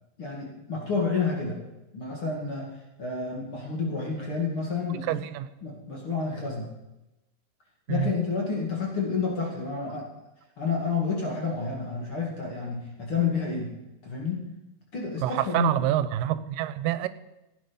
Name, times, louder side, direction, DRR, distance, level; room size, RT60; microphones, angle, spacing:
voice 1, 0.2-1.6 1.9-2.7 3.0-5.1 5.6-6.7 7.9-10.1 10.6-13.7 14.0-14.5 14.9-15.7, left 5 dB, 40° left, -1 dB, 2.8 m, -29 dB
voice 2, 5.1-5.5 7.9-8.1 15.2-17.1, right 13 dB, 80° right, 13 dB, 2.3 m, -27 dB
16.0 x 9.4 x 5.4 m, 0.97 s
omnidirectional pair, 4.0 m